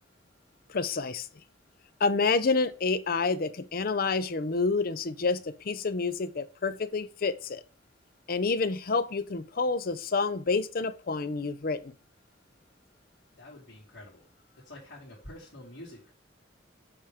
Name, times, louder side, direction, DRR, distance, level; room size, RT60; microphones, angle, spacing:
voice 1, 0.7-1.3 2.0-7.6 8.3-11.9, left 4 dB, 55° left, 0.6 m, -28 dB
voice 2, 13.4-14.3 14.6-16.1, left 1 dB, 75° left, 2.7 m, -47 dB
7.1 x 3.6 x 4.9 m
head